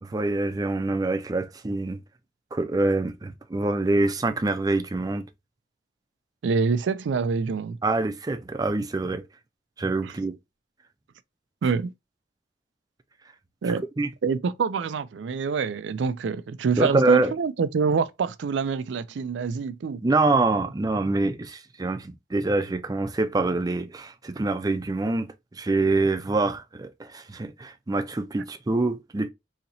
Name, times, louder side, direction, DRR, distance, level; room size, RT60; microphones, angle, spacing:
voice 1, 0.0-2.0 2.5-5.3 7.8-9.2 9.8-10.4 13.7-14.1 16.8-17.3 20.0-29.3, right 2 dB, 20° right, 0.4 m, -25 dB
voice 2, 6.4-7.8 10.0-10.1 11.6-11.9 13.6-13.8 14.2-20.0, right 5 dB, 85° right, 0.4 m, -26 dB
4.1 x 2.8 x 2.6 m
head